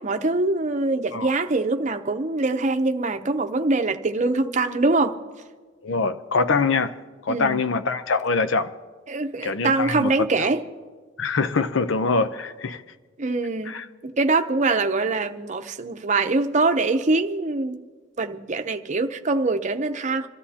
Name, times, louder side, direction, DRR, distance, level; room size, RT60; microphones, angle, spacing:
voice 1, 0.0-5.2 7.3-7.6 9.1-10.6 13.2-13.7 14.0-17.8 18.2-20.3, right 3 dB, 40° right, 0.7 m, -23 dB
voice 2, 5.8-7.0 7.2-8.7 9.4-10.3 11.2-12.8 13.7-13.9, left 4 dB, 80° left, 0.6 m, -24 dB
27.0 x 13.5 x 2.8 m
head